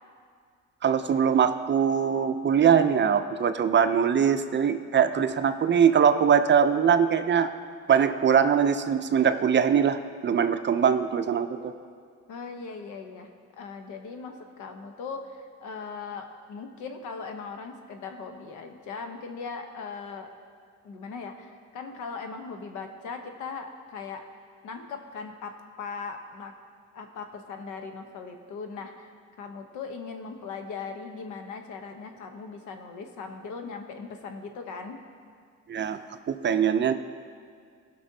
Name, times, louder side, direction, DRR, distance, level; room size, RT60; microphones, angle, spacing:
voice 1, 0.8-7.5 7.9-11.7 35.7-36.0 36.3-36.9, right 7 dB, 40° right, 9 dB, 0.5 m, -22 dB
voice 2, 12.3-13.3 13.6-20.3 20.8-24.2 24.6-25.5 25.8-26.5 26.9-29.1 29.4-35.0, left 5 dB, 85° left, 5 dB, 0.9 m, -39 dB
18.0 x 6.0 x 2.8 m, 2.1 s
cardioid pair, 90°, 30 cm